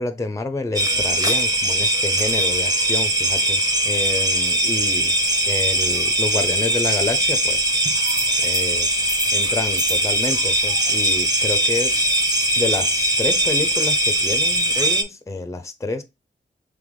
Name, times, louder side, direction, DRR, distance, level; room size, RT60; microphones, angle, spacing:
voice 1, 0.0-5.1 5.5-7.7 8.4-8.9 9.3-11.9 12.6-16.0, left 3 dB, 15° left, 0.5 m, -28 dB
sound 1, 0.7-15.0, right 1 dB, 20° right, 0.9 m, -20 dB
3.4 x 3.3 x 3.7 m
cardioid pair, 70°, 19 cm